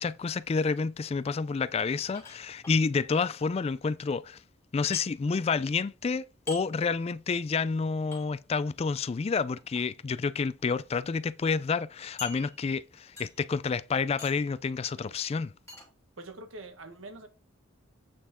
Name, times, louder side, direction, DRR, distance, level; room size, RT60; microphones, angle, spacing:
voice 1, 0.0-4.4 4.7-15.5, left 5 dB, 30° left, 0.3 m, -29 dB
sound 1, 2.1-2.8 4.9-5.1 6.5-6.6 8.1-8.2 9.6-9.8 10.6-10.7 11.0-11.1 12.2-12.8 13.2-13.5 14.2-14.5 15.7-15.9, left 3 dB, 15° left, 3.4 m, -43 dB
voice 2, 16.2-17.3, right 2 dB, 90° right, 1.4 m, -45 dB
8.4 x 5.7 x 3.7 m
head